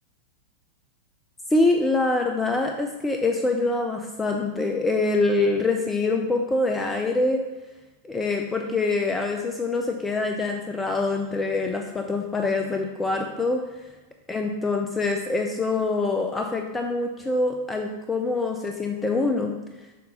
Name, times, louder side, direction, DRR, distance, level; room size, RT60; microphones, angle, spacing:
voice 1, 1.5-7.4 8.0-13.6 14.3-19.5, left 3 dB, 15° left, 3 dB, 0.5 m, -25 dB
6.5 x 4.0 x 5.3 m, 1.2 s
figure-of-eight pair, 90°, 0 cm